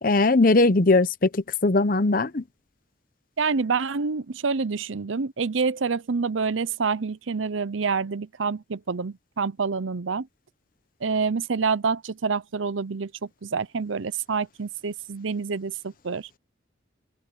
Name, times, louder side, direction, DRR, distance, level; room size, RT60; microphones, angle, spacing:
voice 1, 0.0-2.4, left 3 dB, 45° left, 0.8 m, -20 dB
voice 2, 3.4-10.3 11.0-16.3, right 5 dB, 85° right, 0.7 m, -27 dB
open air
head